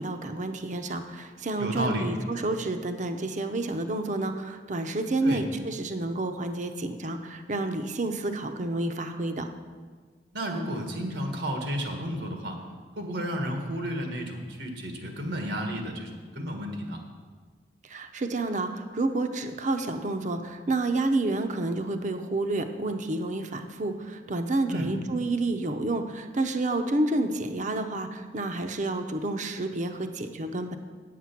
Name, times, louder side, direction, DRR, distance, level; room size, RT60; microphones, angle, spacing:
voice 1, 0.0-9.5 17.8-30.8, right 2 dB, 45° right, 7 dB, 0.7 m, -29 dB
voice 2, 1.6-2.1 5.2-5.4 10.3-12.6 13.0-17.0 24.7-24.9, equal, 90° right, 3 dB, 1.5 m, -32 dB
9.1 x 7.5 x 5.8 m, 1.6 s
head